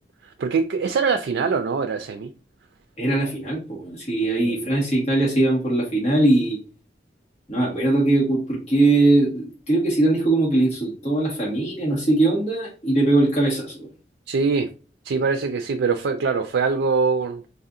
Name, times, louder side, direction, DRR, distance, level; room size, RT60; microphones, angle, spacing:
voice 1, 0.2-2.3 4.2-4.8 14.3-14.7 15.0-17.4, right 5 dB, 85° right, 0.4 m, -23 dB
voice 2, 3.0-6.6 7.5-13.9, right 2 dB, 40° left, 1.6 m, -21 dB
4.6 x 2.7 x 2.4 m
head